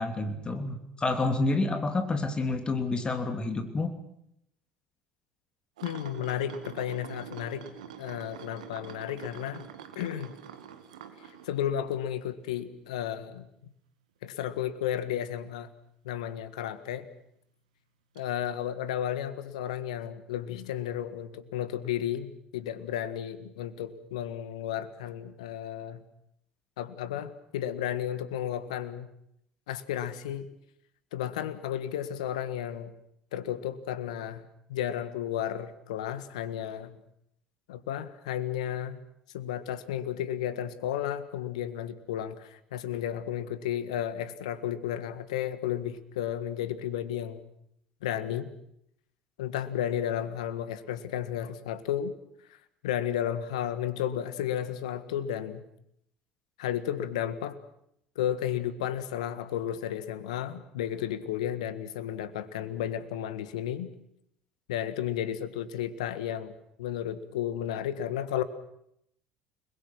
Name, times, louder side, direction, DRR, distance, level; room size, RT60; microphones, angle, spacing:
voice 1, 0.0-3.9, left 2 dB, 25° left, 6 dB, 2.9 m, -29 dB
voice 2, 5.8-7.6 8.0-9.6 9.9-10.3 11.4-13.5 14.2-15.7 16.0-17.1 18.1-26.0 26.8-29.1 29.7-30.5 31.1-32.9 33.3-37.0 37.7-39.0 39.3-47.4 48.0-48.6 49.4-52.2 52.5-52.6 52.8-55.6 56.6-57.6 58.1-63.9 64.7-68.4, left 10 dB, 70° left, 14 dB, 1.6 m, -33 dB
sound 1, 5.8-12.3 12.7-12.9 16.3-16.4 18.1-18.2, right 9 dB, 75° right, 2.1 m, -46 dB
30.0 x 21.5 x 6.2 m, 0.74 s
figure-of-eight pair, 65°, 4 cm